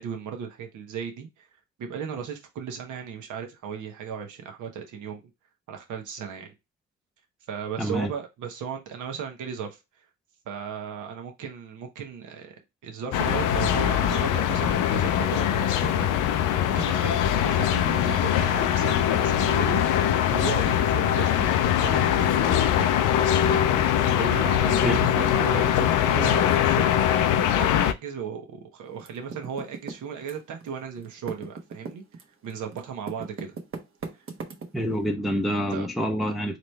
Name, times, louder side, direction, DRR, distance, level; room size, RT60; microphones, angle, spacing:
voice 1, 0.0-1.5 1.8-5.2 5.7-6.5 7.5-9.8 10.4-12.5 12.8-19.8 20.2-21.5 21.8-23.0 23.5-23.7 24.1-26.9 27.4-32.0 32.4-33.6 35.7-35.9, right 7 dB, 75° right, 1.2 m, -36 dB
voice 2, 7.8-8.1 24.8-25.0 34.7-36.6, equal, ahead, 0.6 m, -26 dB
sound 1, 13.1-27.9, left 10 dB, 85° left, 0.6 m, -22 dB
Typing, 29.0-30.7 31.0-35.0, right 4 dB, 45° right, 1.1 m, -38 dB
4.0 x 3.2 x 3.2 m
cardioid pair, 90°, 30 cm